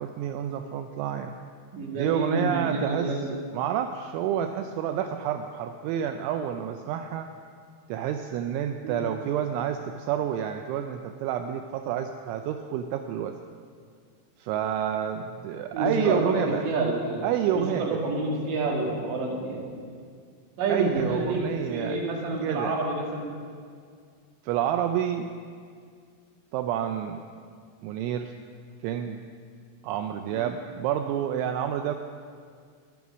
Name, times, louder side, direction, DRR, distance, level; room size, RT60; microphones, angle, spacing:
voice 1, 0.0-1.4 2.0-3.1 3.5-7.3 7.9-13.4 14.4-16.6 17.2-18.0 20.7-22.0 22.4-22.7 24.4-25.3 26.5-27.2 27.8-28.3 28.8-29.2 29.8-32.0, right 9 dB, 85° right, 6 dB, 2.8 m, -29 dB
voice 2, 1.7-3.3 8.8-9.0 15.7-16.3 16.6-17.2 17.5-19.7 20.6-21.4 21.7-23.3 30.3-30.5, right 2 dB, 55° right, -1 dB, 2.9 m, -28 dB
12.5 x 11.0 x 6.1 m, 2.1 s
omnidirectional pair, 5.7 m